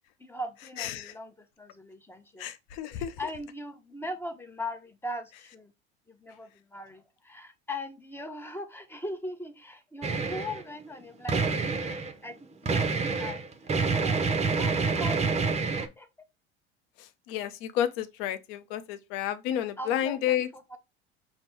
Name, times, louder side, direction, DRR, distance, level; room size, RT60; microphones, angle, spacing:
voice 1, 0.2-2.5 3.0-5.7 6.1-11.7 12.2-13.4 14.0-16.1 19.8-20.4, left 1 dB, 5° left, 0.9 m, -40 dB
voice 2, 0.8-1.1 2.4-3.2 17.0-20.5, left 11 dB, 60° left, 0.7 m, -31 dB
sound 1, 10.0-10.6 11.3-12.1 12.7-15.9, right 4 dB, 20° right, 0.7 m, -27 dB
5.2 x 2.1 x 4.5 m
hypercardioid pair, 75°, 32 cm